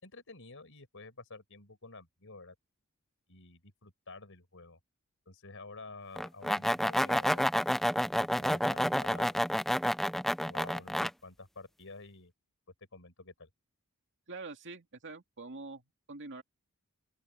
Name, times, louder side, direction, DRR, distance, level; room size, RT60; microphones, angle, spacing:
voice 1, 0.0-2.6 3.3-4.8 5.3-7.5 8.1-9.3 10.4-12.3 12.9-13.5, left 3 dB, 65° left, 5.3 m, -50 dB
sound 1, 6.2-11.1, equal, ahead, 0.6 m, -29 dB
voice 2, 14.3-16.4, right 3 dB, 60° right, 2.6 m, -45 dB
open air
head